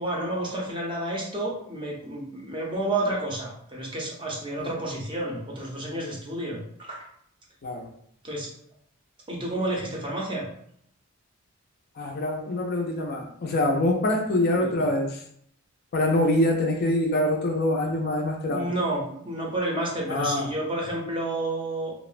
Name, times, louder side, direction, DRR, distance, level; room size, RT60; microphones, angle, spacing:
voice 1, 0.0-7.0 8.2-8.5 9.3-10.5 14.5-14.8 18.5-21.9, right 1 dB, 20° right, -2 dB, 0.5 m, -30 dB
voice 2, 12.0-15.2 15.9-18.7 20.1-20.5, left 1 dB, 45° left, 1 dB, 0.4 m, -25 dB
2.8 x 2.0 x 2.4 m, 0.67 s
head